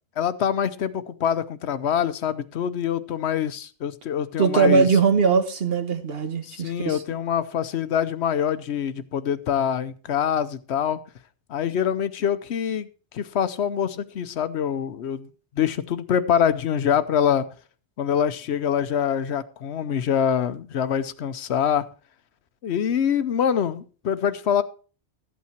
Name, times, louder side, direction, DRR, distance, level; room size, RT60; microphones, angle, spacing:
voice 1, 0.2-4.9 6.4-11.0 11.5-12.9 13.1-15.3 15.5-17.5 18.0-21.9 22.6-24.6, left 8 dB, 80° left, 1.0 m, -25 dB
voice 2, 4.4-7.0, right 5 dB, 65° right, 1.4 m, -20 dB
13.5 x 8.5 x 4.4 m
omnidirectional pair, 1.1 m